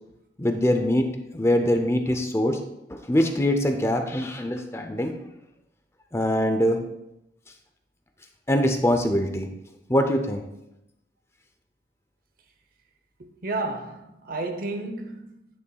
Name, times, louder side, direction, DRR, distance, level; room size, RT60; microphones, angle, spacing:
voice 1, 0.4-1.1 1.3-2.6 2.9-5.1 6.1-6.8 8.5-9.5 9.9-10.4, left 1 dB, 15° left, 0.6 m, -23 dB
voice 2, 13.2-15.5, right 2 dB, 55° right, 0.9 m, -32 dB
9.6 x 8.2 x 2.4 m
head